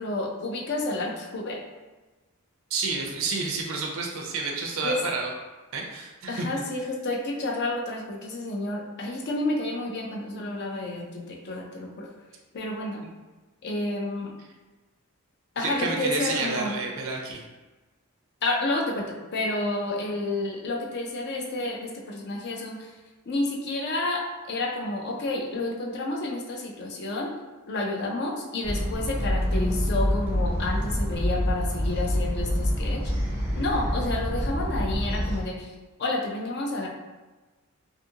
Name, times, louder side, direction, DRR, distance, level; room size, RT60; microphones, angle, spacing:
voice 1, 0.0-1.6 4.8-5.0 6.3-12.1 12.5-13.0 13.6-14.3 15.6-16.8 18.4-22.9 23.3-27.3 27.7-33.0 33.5-35.7 36.0-36.9, left 2 dB, 50° left, 0 dB, 0.4 m, -30 dB
voice 2, 2.7-5.3 5.7-6.5 13.0-13.1 15.6-17.5, right 3 dB, 65° right, 0 dB, 0.4 m, -30 dB
sound 1, 28.6-35.4, equal, 10° right, 0.5 m, -26 dB
2.6 x 2.4 x 2.7 m, 1.2 s
head